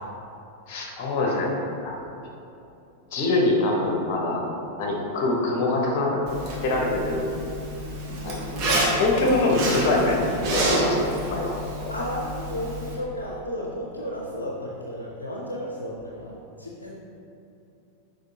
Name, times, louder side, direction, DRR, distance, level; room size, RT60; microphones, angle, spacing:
voice 1, 0.7-1.5 1.8-1.9 3.1-4.4 4.8-6.2 6.6-7.3 8.2-10.2 10.5-11.9, left 2 dB, 45° left, -1 dB, 1.1 m, -24 dB
Zipper (clothing), 6.3-12.9, right 1 dB, 40° right, 1.3 m, -28 dB
voice 2, 11.9-16.9, equal, 80° left, -2 dB, 0.6 m, -33 dB
6.4 x 5.1 x 2.9 m, 2.7 s
figure-of-eight pair, 90°, 0 cm